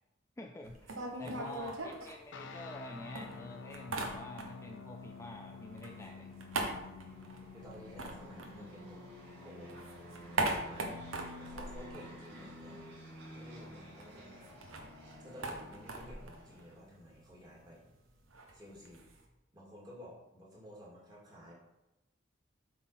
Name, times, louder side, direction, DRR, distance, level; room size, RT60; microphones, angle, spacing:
voice 1, 0.4-6.3 8.5-9.1, left 1 dB, 15° left, 3 dB, 0.4 m, -48 dB
sound 1, 0.6-2.8 3.1-4.8 5.0-9.2 9.5-12.8 13.1-13.2 13.4-19.2, right 2 dB, 85° right, 1.2 m, -40 dB
voice 2, 1.2-1.6 7.5-9.1 9.4-10.0 10.4-11.0 11.4-12.9 13.3-14.5 15.2-17.9 18.5-19.1 19.5-21.5, equal, 20° right, -4 dB, 2.2 m, -53 dB
sound 2, 2.3-10.6, left 5 dB, 65° left, 0.5 m, -50 dB
sound 3, 4.2-16.8, left 1 dB, 55° right, 2.6 m, -52 dB
8.1 x 4.1 x 5.6 m, 0.93 s
head